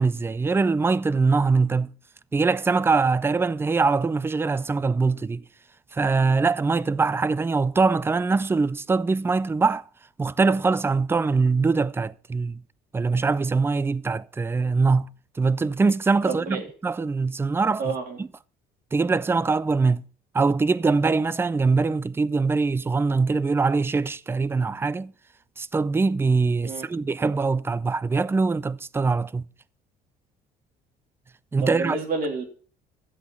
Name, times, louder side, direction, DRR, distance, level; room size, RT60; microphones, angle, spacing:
voice 1, 0.0-1.9 2.3-5.4 5.9-9.8 10.2-12.6 12.9-15.1 15.4-17.9 18.9-20.0 20.3-25.1 25.6-29.5 31.5-32.0, right 4 dB, 15° right, 0.4 m, -23 dB
voice 2, 16.3-16.7 17.8-18.2 26.6-26.9 31.6-32.4, right 4 dB, 55° right, 3.3 m, -29 dB
12.5 x 8.1 x 5.6 m
cardioid pair, 110°, 17 cm